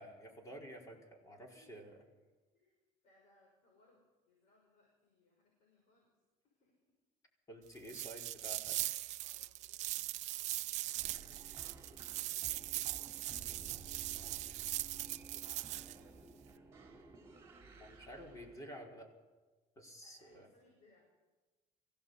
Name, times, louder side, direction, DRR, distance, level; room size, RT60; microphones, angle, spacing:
voice 1, 0.0-2.0 7.5-8.9 11.3-11.7 17.8-19.1 19.8-20.5, equal, 25° left, 0 dB, 4.6 m, -51 dB
voice 2, 1.4-2.1 2.5-6.1 6.4-6.8 9.2-11.2 11.5-11.6 11.9-16.4 20.0-21.2, left 2 dB, 55° left, 0 dB, 6.5 m, -72 dB
sound 1, 7.8-16.0, right 15 dB, 55° right, 0.6 m, -40 dB
sound 2, 11.0-18.6, right 4 dB, 20° right, 4.0 m, -55 dB
24.0 x 16.5 x 8.2 m, 1.2 s
cardioid pair, 160°, 14 cm